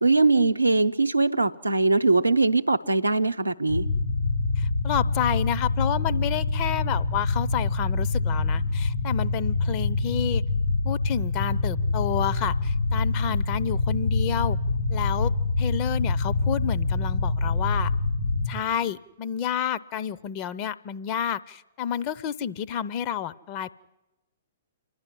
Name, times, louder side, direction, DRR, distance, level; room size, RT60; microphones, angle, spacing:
voice 1, 0.0-3.9, right 3 dB, 90° right, 0.7 m, -21 dB
sound 1, 3.7-18.5, left 3 dB, 90° left, 3.9 m, -25 dB
voice 2, 4.6-10.4 10.8-14.6 14.9-15.3 15.6-17.9 18.5-23.7, left 9 dB, 35° left, 0.6 m, -30 dB
27.5 x 11.0 x 9.9 m
figure-of-eight pair, 115°, 0 cm